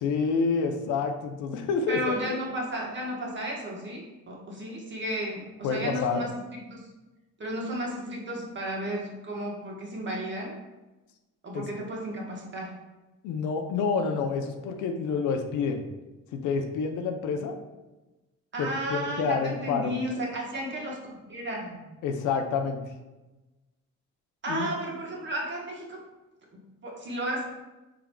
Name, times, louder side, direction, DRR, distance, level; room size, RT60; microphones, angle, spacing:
voice 1, 0.0-2.4 5.6-6.3 11.5-11.6 13.2-15.8 16.3-17.5 18.6-19.9 22.0-22.8 24.5-24.7, left 5 dB, 90° left, 5 dB, 0.5 m, -28 dB
voice 2, 1.9-6.9 7.4-10.6 11.4-12.7 18.5-21.9 24.4-26.0 26.5-27.4, right 1 dB, 40° right, -2 dB, 1.2 m, -33 dB
4.5 x 3.7 x 2.2 m, 1.1 s
cardioid pair, 90°, 30 cm